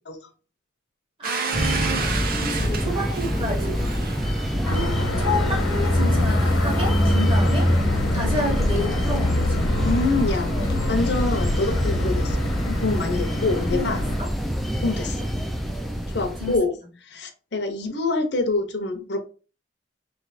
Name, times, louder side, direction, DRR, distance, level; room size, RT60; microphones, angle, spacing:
voice 1, 1.2-3.9 4.6-7.7 8.1-9.7 11.1-11.3 13.7-14.3 16.4-16.6, left 1 dB, 25° right, 1.4 m, -30 dB
Domestic sounds home sounds, 1.2-5.9, right 5 dB, 45° right, 0.6 m, -32 dB
sound 1, 1.5-16.6, equal, ahead, 0.3 m, -27 dB
sound 2, 4.6-14.2, left 1 dB, 90° left, 1.0 m, -24 dB
voice 2, 9.8-14.0 14.8-15.3 16.1-16.7 17.0-19.2, left 3 dB, 55° left, 0.7 m, -26 dB
3.2 x 2.9 x 4.0 m
head